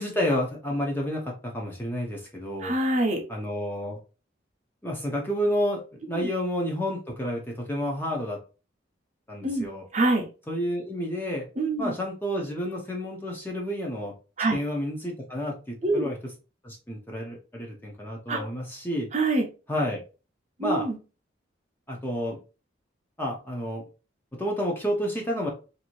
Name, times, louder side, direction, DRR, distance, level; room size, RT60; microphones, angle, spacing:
voice 1, 0.0-2.7 3.3-4.0 4.8-8.4 9.3-9.8 10.5-11.5 11.8-14.1 14.5-16.2 16.6-19.1 19.7-20.0 20.6-20.9 21.9-22.4 23.2-23.8 24.3-25.5, equal, 10° left, -1 dB, 0.6 m, -30 dB
voice 2, 2.6-3.2 6.1-6.3 9.4-9.7 9.9-10.3 11.6-11.9 14.4-14.6 15.8-16.1 18.3-18.4 19.1-19.5 20.6-21.0, right 2 dB, 35° right, 2 dB, 0.6 m, -25 dB
2.7 x 2.6 x 3.0 m, 0.33 s
head